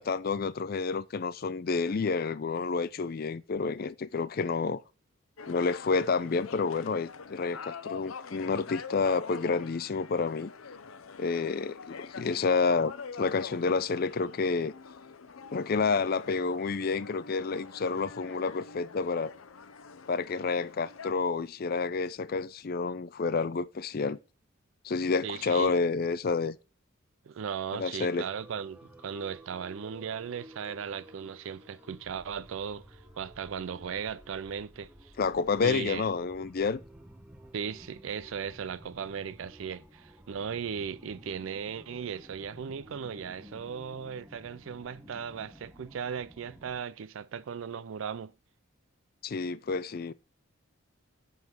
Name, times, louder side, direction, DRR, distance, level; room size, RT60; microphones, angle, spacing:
voice 1, 0.0-4.8 5.5-10.5 11.2-12.9 13.2-14.7 15.5-19.3 20.1-24.2 24.8-26.6 27.7-28.3 35.2-36.8 49.2-50.1, left 4 dB, 45° left, 0.4 m, -29 dB
sound 1, 5.4-21.1, left 5 dB, 85° left, 0.7 m, -45 dB
voice 2, 25.2-25.7 27.2-35.1 35.6-36.0 37.5-48.3, right 7 dB, 70° right, 0.4 m, -37 dB
sound 2, 28.0-46.8, equal, 5° right, 1.0 m, -53 dB
10.5 x 3.9 x 6.1 m
head